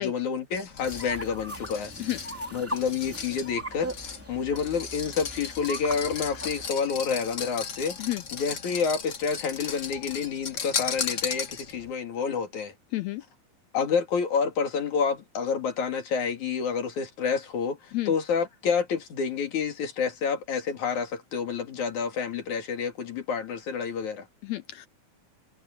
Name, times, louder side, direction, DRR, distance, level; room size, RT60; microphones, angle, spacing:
voice 1, 0.0-1.9 2.5-8.0 8.3-12.7 13.7-24.3, left 6 dB, 65° left, 3.9 m, -29 dB
sound 1, 0.5-11.9, left 6 dB, 40° left, 1.8 m, -36 dB
sound 2, 0.8-6.7, right 1 dB, 5° right, 2.7 m, -39 dB
voice 2, 12.9-13.2 17.9-18.1 24.4-24.9, left 16 dB, 85° left, 1.6 m, -30 dB
omnidirectional pair, 3.8 m